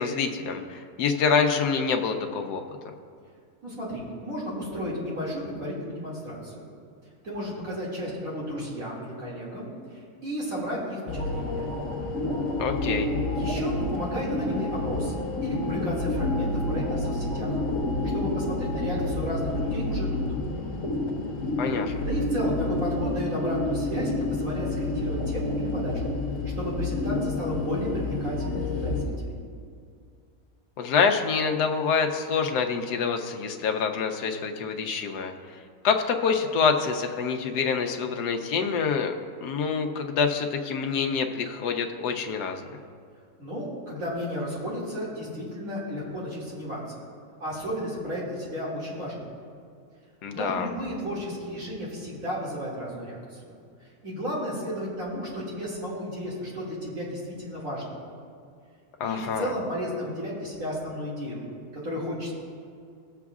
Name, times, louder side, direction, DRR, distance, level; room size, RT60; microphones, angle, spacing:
voice 1, 0.0-2.6 12.6-13.1 21.6-22.0 30.8-35.3 35.8-39.1 39.4-42.6 50.2-50.7 59.0-59.5, left 5 dB, 80° left, 4 dB, 1.3 m, -26 dB
voice 2, 3.6-6.7 7.2-11.7 13.3-15.1 15.4-17.6 18.1-20.2 22.0-26.1 26.6-29.3 43.4-47.0 47.4-49.2 50.3-53.6 54.0-57.8 59.0-61.4 61.7-62.3, equal, 55° right, -6 dB, 2.7 m, -33 dB
sound 1, 11.1-29.1, left 2 dB, 55° left, 1.6 m, -29 dB
17.5 x 7.1 x 2.4 m, 2.3 s
omnidirectional pair, 1.7 m